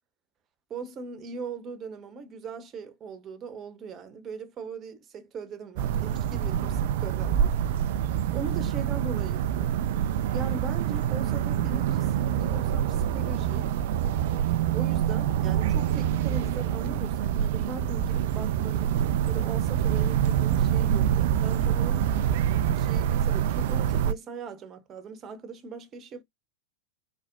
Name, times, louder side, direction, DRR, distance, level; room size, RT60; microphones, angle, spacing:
voice 1, 0.7-7.8 8.3-9.9 10.3-13.7 14.7-19.0 19.3-22.1 22.7-26.2, right 4 dB, 30° right, 1.0 m, -40 dB
sound 1, 5.8-24.1, right 10 dB, 50° right, 0.4 m, -26 dB
4.2 x 4.0 x 2.6 m
figure-of-eight pair, 90°, 0 cm